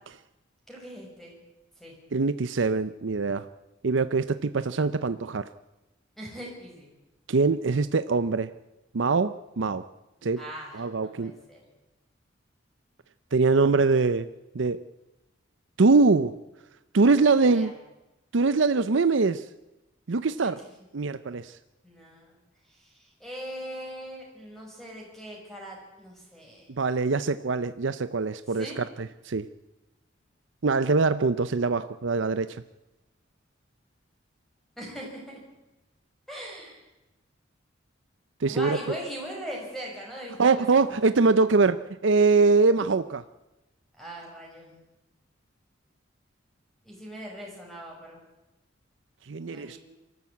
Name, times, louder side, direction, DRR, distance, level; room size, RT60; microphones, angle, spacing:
voice 1, 0.7-1.4 1.8-2.0 6.2-6.9 10.4-11.6 17.1-17.7 20.4-20.7 21.8-22.3 22.7-26.7 28.5-28.8 34.8-35.4 36.3-36.8 38.5-41.0 44.0-44.8 46.8-48.2 49.5-49.8, equal, ahead, -2 dB, 6.0 m, -40 dB
voice 2, 2.1-3.5 3.8-5.5 7.3-8.5 8.9-9.8 10.2-10.4 10.7-11.3 13.3-14.3 14.5-14.8 15.8-16.3 16.9-17.7 18.3-19.5 20.1-20.6 20.9-21.6 26.8-29.5 30.6-32.6 38.4-38.8 40.4-43.2 49.3-49.8, right 4 dB, 75° right, 13 dB, 0.6 m, -23 dB
24.0 x 14.0 x 8.5 m, 1.0 s
head